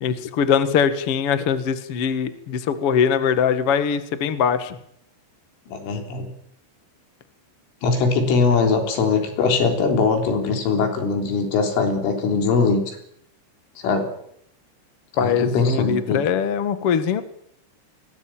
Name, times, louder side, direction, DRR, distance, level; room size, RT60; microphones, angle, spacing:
voice 1, 0.0-4.8 15.2-17.2, left 7 dB, 65° left, 10 dB, 1.4 m, -22 dB
voice 2, 5.7-6.3 7.8-12.8 13.8-14.1 15.1-16.2, left 4 dB, 80° left, 4 dB, 6.2 m, -21 dB
22.0 x 18.5 x 8.8 m, 0.73 s
omnidirectional pair, 5.6 m